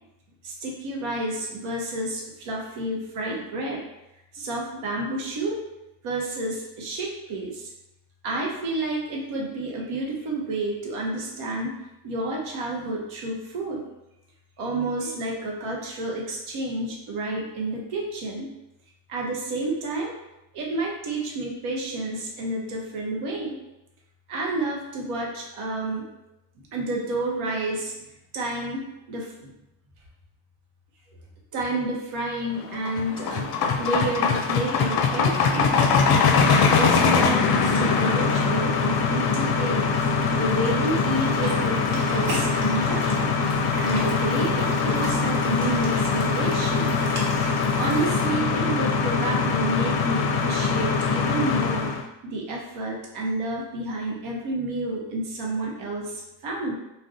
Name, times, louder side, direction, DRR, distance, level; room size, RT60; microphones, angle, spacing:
voice 1, 0.4-3.8 4.3-5.6 6.0-7.7 8.2-11.8 12.0-13.8 14.6-18.5 19.1-20.1 20.5-23.6 24.3-26.1 26.7-27.9 28.3-29.5 31.1-31.2 31.5-33.5 33.8-35.8 36.5-39.8 40.3-43.3 43.8-46.9 47.7-51.9 52.2-56.7, right 2 dB, 80° right, -2 dB, 0.8 m, -30 dB
sound 1, 32.6-52.0, left 5 dB, 50° left, 0.5 m, -23 dB
sound 2, 36.3-48.3, right 1 dB, 55° right, 1.1 m, -38 dB
2.4 x 2.2 x 3.7 m, 0.91 s
supercardioid pair, 70°, 49 cm